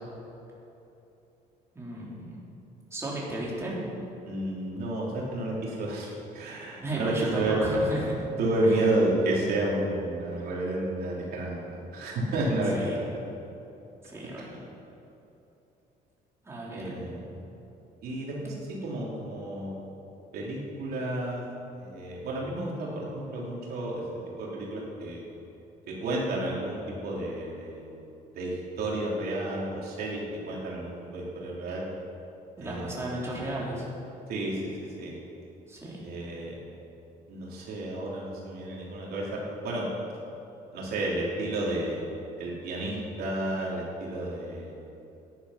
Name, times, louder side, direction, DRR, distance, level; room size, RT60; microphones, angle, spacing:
voice 1, 1.7-2.3 2.9-3.8 6.8-8.2 8.6-8.7 12.7-12.9 14.0-14.5 16.4-17.2 32.6-33.9 35.7-36.0, right 1 dB, 15° right, -6 dB, 3.9 m, -34 dB
voice 2, 4.2-7.6 8.4-13.0 16.7-17.1 18.0-19.7 20.3-21.4 21.8-24.0 24.4-25.2 25.9-27.9 28.3-31.8 32.6-33.1 34.3-34.7 35.0-35.1 36.0-36.5 37.3-39.9 40.7-42.0 42.4-44.8, right 1 dB, 65° right, -4 dB, 3.4 m, -31 dB
13.5 x 11.0 x 5.9 m, 2.9 s
cardioid pair, 110°, 17 cm